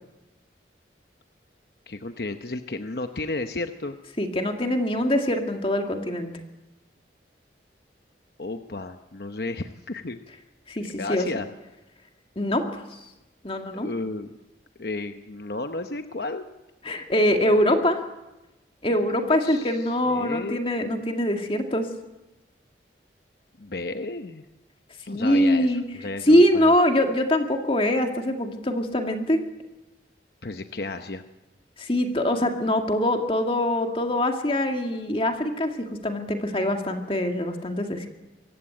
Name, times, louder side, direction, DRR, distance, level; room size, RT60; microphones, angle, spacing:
voice 1, 1.9-4.0 5.0-5.1 8.4-10.2 10.8-11.5 13.7-14.4 14.8-16.5 19.1-20.7 23.6-24.4 25.1-26.7 30.4-31.2, left 2 dB, 60° left, 7 dB, 0.9 m, -33 dB
voice 2, 4.2-6.3 10.7-11.3 12.4-12.6 12.9-13.0 13.4-13.9 16.8-18.0 18.8-21.9 25.1-25.8 26.3-29.4 31.8-38.1, left 1 dB, 30° left, 4 dB, 2.0 m, -23 dB
24.5 x 15.0 x 9.0 m, 1.0 s
head